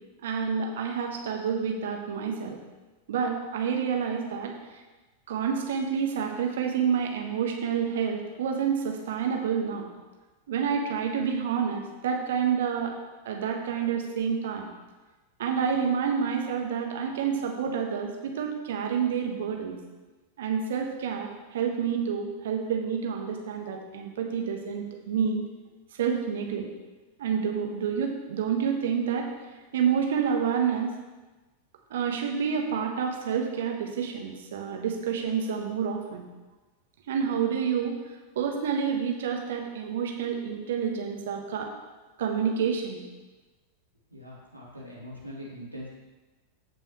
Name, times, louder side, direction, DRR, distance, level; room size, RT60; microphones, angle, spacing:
voice 1, 0.2-2.6 3.1-4.5 5.3-9.9 10.5-12.9 13.2-14.7 15.4-19.8 20.4-25.5 26.0-26.7 27.2-29.3 29.7-30.9 31.9-36.2 37.1-38.0 38.3-41.7 42.2-43.0, right 7 dB, 60° right, 2 dB, 1.3 m, -28 dB
voice 2, 44.1-45.9, equal, 85° left, -5 dB, 2.7 m, -42 dB
15.5 x 5.4 x 3.1 m, 1.2 s
figure-of-eight pair, 90°, 0 cm